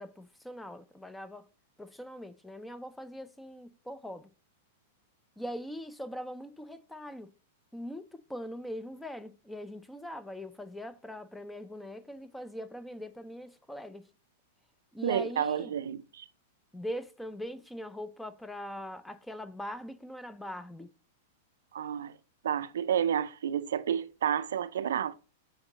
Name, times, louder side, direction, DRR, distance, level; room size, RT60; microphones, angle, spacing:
voice 1, 0.0-1.5 1.8-4.3 5.4-7.3 7.7-14.1 14.9-15.7 16.7-20.9, equal, 5° left, 0.5 m, -41 dB
voice 2, 15.0-16.2 21.7-22.1 22.4-25.1, right 9 dB, 75° right, 0.4 m, -30 dB
7.0 x 3.9 x 4.0 m
hypercardioid pair, 110°, 0 cm